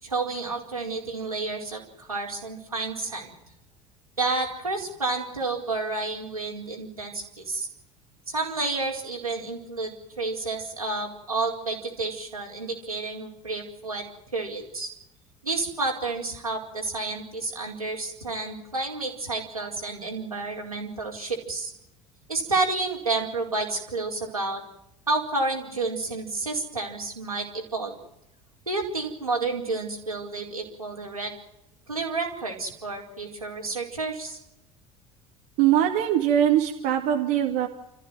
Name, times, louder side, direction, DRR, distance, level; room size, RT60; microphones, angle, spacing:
voice 1, 0.0-3.3 4.2-7.7 8.3-14.0 14.3-14.9 15.4-21.7 22.3-24.6 25.1-27.9 28.7-31.3 31.9-34.4, right 3 dB, 85° right, -1 dB, 4.7 m, -30 dB
voice 2, 35.6-37.7, right 11 dB, 55° right, 3 dB, 2.2 m, -22 dB
29.5 x 15.0 x 9.3 m, 0.84 s
figure-of-eight pair, 65°, 18 cm